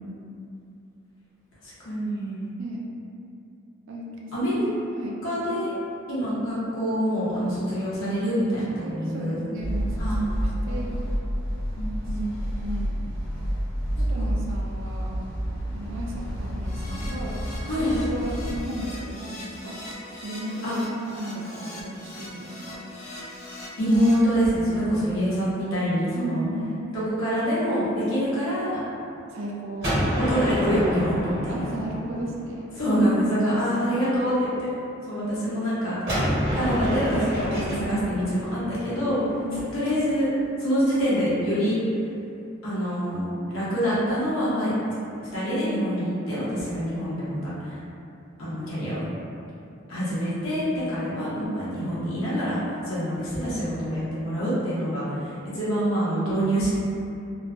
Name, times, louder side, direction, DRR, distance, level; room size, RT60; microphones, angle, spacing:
voice 1, 1.6-2.4 4.3-4.7 5.2-5.8 6.1-9.4 10.0-10.2 10.7-10.8 11.7-12.2 17.7-17.9 20.6-20.7 23.8-26.4 27.1-28.8 30.2-31.8 32.8-34.7 35.0-36.0 36.5-39.2 39.7-40.3 40.6-41.8 42.6-45.0 45.3-47.8 48.4-49.0 49.9-50.6 50.9-52.6 52.8-56.7, equal, 90° left, -10 dB, 1.0 m, -25 dB
voice 2, 3.9-4.3 4.9-5.2 5.5-5.6 8.5-11.0 12.6-13.0 14.0-15.1 15.7-17.4 17.7-19.8 20.2-20.8 21.1-22.8 26.1-26.8 29.3-29.9 31.5-32.6 32.9-33.0 39.4-39.6, right 1 dB, 70° right, -3 dB, 0.4 m, -35 dB
sound 1, 9.6-18.6, equal, 60° left, 1.1 m, -29 dB
Keyboard (musical), 16.6-24.1, left 1 dB, 35° left, 0.3 m, -41 dB
Gunshot gunfire, 29.8-32.6 36.1-39.9, equal, 50° right, 1.2 m, -28 dB
3.0 x 2.2 x 2.5 m, 2.6 s
head